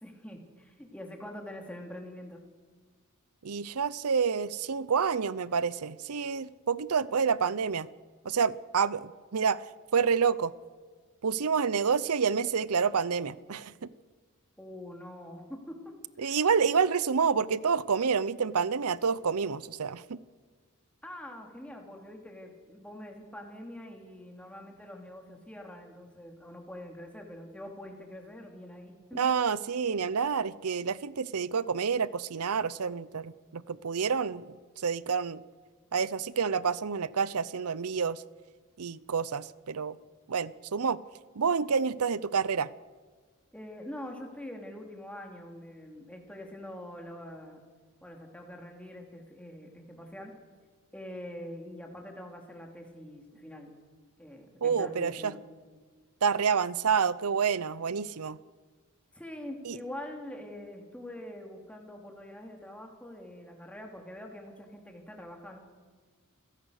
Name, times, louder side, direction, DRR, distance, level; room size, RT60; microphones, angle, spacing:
voice 1, 0.0-2.4 14.6-15.9 16.2-16.4 16.6-16.7 21.0-29.2 43.5-47.6 48.0-50.3 50.9-53.7 54.2-55.4 59.1-65.6, left 1 dB, 5° left, 2 dB, 3.1 m, -44 dB
voice 2, 3.4-7.9 8.2-9.6 9.9-10.5 11.2-13.9 16.2-20.2 29.2-35.4 35.9-38.2 38.8-40.0 40.3-41.0 41.4-42.7 54.6-55.3 56.2-58.4 59.7-59.8, right 6 dB, 85° right, 18 dB, 0.7 m, -28 dB
28.5 x 16.5 x 6.6 m, 1.5 s
head